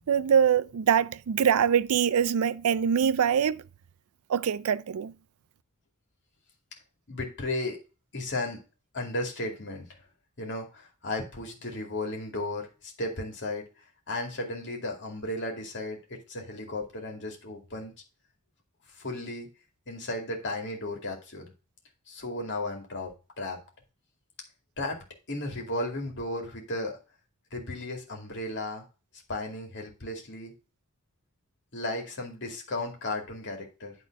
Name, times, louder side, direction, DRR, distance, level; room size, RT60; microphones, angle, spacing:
voice 1, 0.1-3.6 4.3-5.1, right 8 dB, 70° right, 0.4 m, -24 dB
voice 2, 7.1-7.8 8.1-8.6 8.9-9.9 10.4-13.6 14.1-17.9 19.0-19.5 19.9-21.4 22.1-23.1 23.4-23.6 24.8-25.0 25.3-27.0 27.5-28.8 29.3-30.5 31.7-33.9, left 2 dB, 55° left, 2.3 m, -34 dB
9.1 x 3.8 x 5.8 m
head